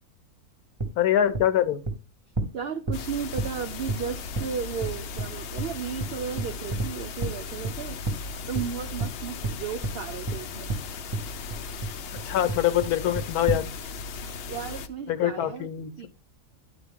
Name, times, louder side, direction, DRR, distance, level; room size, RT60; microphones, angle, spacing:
sound 1, 0.8-0.9 1.3-1.4 1.8-1.9 2.4-2.5 2.9-3.0 3.4-3.5 3.9-4.0 4.3-4.4 4.8-4.9 5.2-5.3 5.6-5.7 6.0-6.1 6.4-6.9 7.2-7.3 7.6-7.7 8.0-8.2 8.5-8.7 9.0-9.1 9.4-9.5 9.8-9.9 10.3-10.4 10.7-10.8 11.1-11.2 11.5-11.9 12.2-12.3 12.5-12.9 13.1-13.6, right 2 dB, 20° right, 0.8 m, -29 dB
voice 1, 1.0-1.8 12.1-13.7 15.1-16.1, left 11 dB, 85° left, 1.2 m, -24 dB
voice 2, 2.5-8.0 8.5-10.8 14.5-15.7 16.0-16.1, right 7 dB, 80° right, 0.5 m, -34 dB
sound 2, 2.9-14.9, left 4 dB, 65° left, 0.6 m, -37 dB
10.5 x 4.1 x 3.6 m
omnidirectional pair, 1.6 m